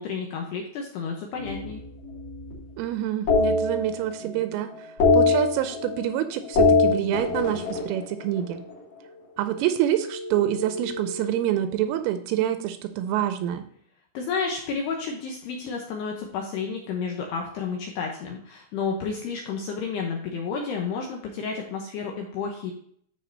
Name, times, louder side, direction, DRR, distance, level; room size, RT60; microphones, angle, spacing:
voice 1, 0.0-1.8 14.1-22.7, left 5 dB, 80° left, 1 dB, 2.4 m, -31 dB
sound 1, 1.4-2.7 3.3-4.4 4.7-6.1 6.4-8.8 10.0-11.7, left 3 dB, 40° left, 2.5 m, -24 dB
voice 2, 2.8-4.9 5.1-8.6 9.4-13.6, right 12 dB, 85° right, 9 dB, 3.1 m, -26 dB
12.5 x 5.4 x 2.8 m, 0.62 s
omnidirectional pair, 5.9 m